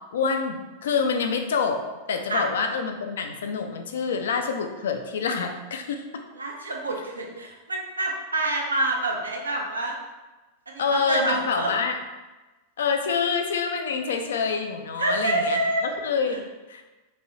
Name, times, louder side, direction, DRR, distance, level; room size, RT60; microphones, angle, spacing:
voice 1, 0.1-1.8 2.1-6.0 10.8-11.9 12.8-16.4 16.7-16.8, left 5 dB, 60° left, 5 dB, 0.3 m, -26 dB
voice 2, 6.4-10.0 10.7-11.7 15.0-15.9 16.2-16.4, right 2 dB, 75° right, -1 dB, 0.5 m, -27 dB
3.0 x 2.6 x 2.7 m, 1.1 s
figure-of-eight pair, 90°, 0 cm